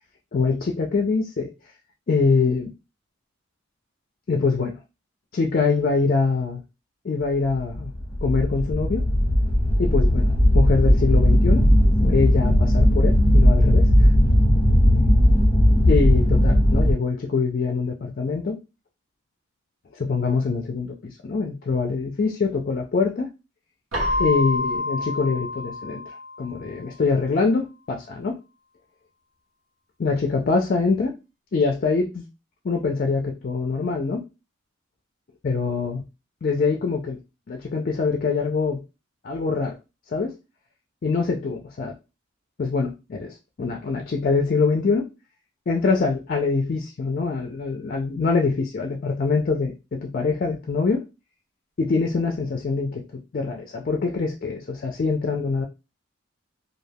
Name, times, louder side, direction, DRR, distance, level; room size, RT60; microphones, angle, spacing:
voice 1, 0.3-1.5 2.1-2.7 4.3-4.8 5.3-6.6 7.0-7.9 8.2-9.0 9.8-11.7 12.0-14.1 15.9-18.6 20.0-23.3 24.2-26.0 26.4-28.4 30.0-31.2 31.5-32.3 32.6-34.2 35.4-36.0 36.4-37.2 37.5-38.8 39.2-39.8 40.1-40.4 41.0-41.9 42.6-45.1 45.7-51.0 51.8-55.7, left 4 dB, 45° left, 3 dB, 0.4 m, -24 dB
sound 1, 7.7-16.9, equal, 25° left, 0.8 m, -17 dB
Keyboard (musical), 23.9-26.7, left 2 dB, 85° right, 0.9 m, -27 dB
2.3 x 2.3 x 3.3 m, 0.27 s
head